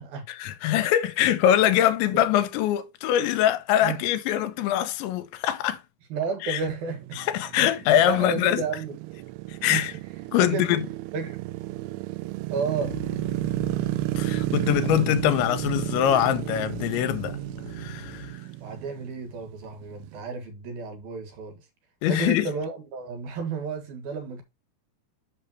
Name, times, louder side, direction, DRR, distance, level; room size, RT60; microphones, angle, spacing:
voice 1, 0.3-5.8 6.4-6.6 7.2-8.6 9.6-9.9 10.3-10.9 14.2-17.4 17.8-18.3 22.0-22.5, left 11 dB, 85° left, 3.1 m, -23 dB
voice 2, 6.1-7.2 7.6-7.7 8.0-8.9 9.7-9.9 10.4-10.7 11.1-11.4 12.5-12.9 18.6-21.6 22.1-24.4, right 5 dB, 60° right, 3.1 m, -32 dB
sound 1, 6.9-20.2, right 18 dB, 90° right, 3.2 m, -32 dB
sound 2, 12.8-18.3, left 5 dB, 70° left, 2.1 m, -41 dB
8.3 x 6.7 x 2.9 m
omnidirectional pair, 5.3 m